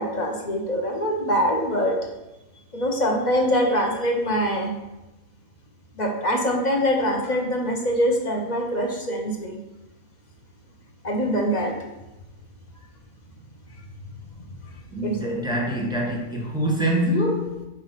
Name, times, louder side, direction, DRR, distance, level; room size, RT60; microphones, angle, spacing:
voice 1, 0.0-2.0 2.7-4.7 5.9-9.6 11.0-11.8 15.0-15.3, equal, 35° left, 1 dB, 0.9 m, -24 dB
voice 2, 14.9-17.7, equal, 5° right, -3 dB, 1.4 m, -25 dB
5.3 x 4.6 x 5.7 m, 0.99 s
omnidirectional pair, 1.5 m